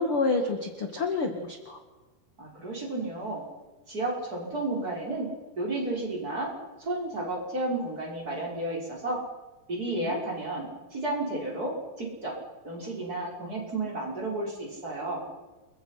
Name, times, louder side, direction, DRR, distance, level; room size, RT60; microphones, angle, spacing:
voice 1, 0.0-1.8 10.0-10.2, left 3 dB, 40° left, 5 dB, 2.2 m, -28 dB
voice 2, 2.4-3.4 3.9-5.3 5.6-6.5 6.8-9.2 9.7-11.7 12.0-12.3 12.6-15.2, right 2 dB, 20° right, -2 dB, 5.8 m, -32 dB
29.5 x 23.5 x 5.9 m, 1.3 s
omnidirectional pair, 4.8 m